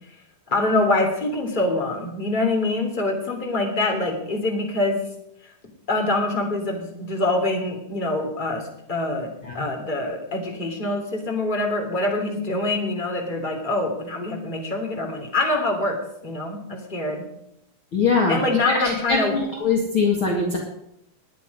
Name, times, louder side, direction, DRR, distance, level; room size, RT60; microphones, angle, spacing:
voice 1, 0.5-5.0 5.9-17.2 18.3-19.3, left 2 dB, 15° left, 1 dB, 1.9 m, -25 dB
voice 2, 17.9-18.4 18.7-20.6, left 4 dB, 60° left, -1 dB, 1.3 m, -22 dB
21.0 x 9.5 x 5.4 m, 0.79 s
omnidirectional pair, 5.5 m